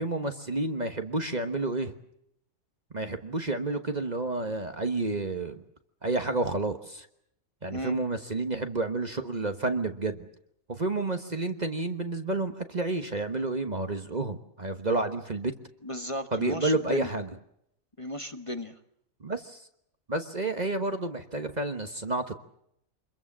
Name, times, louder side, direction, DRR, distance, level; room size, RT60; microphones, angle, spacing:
voice 1, 0.0-1.9 2.9-5.6 6.0-7.1 7.6-10.3 10.7-15.5 16.3-17.3 19.2-19.6 20.1-22.4, right 2 dB, 30° right, 7 dB, 1.3 m, -30 dB
voice 2, 15.8-17.1 18.0-18.8, left 1 dB, 25° left, 6 dB, 1.3 m, -35 dB
25.5 x 22.0 x 7.4 m, 0.73 s
omnidirectional pair, 1.4 m